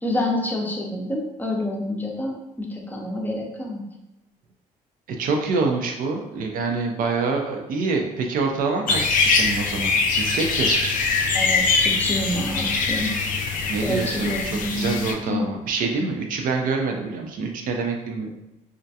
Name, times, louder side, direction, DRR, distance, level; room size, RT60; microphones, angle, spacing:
voice 1, 0.0-3.8 11.3-13.1 13.8-15.6, left 1 dB, 10° left, 0 dB, 0.6 m, -28 dB
voice 2, 5.2-9.9 10.2-10.9 13.7-18.3, right 4 dB, 70° right, 2 dB, 0.5 m, -26 dB
sound 1, 8.9-15.1, left 4 dB, 65° left, 0.4 m, -23 dB
2.4 x 2.1 x 2.7 m, 0.94 s
cardioid pair, 80°, 15 cm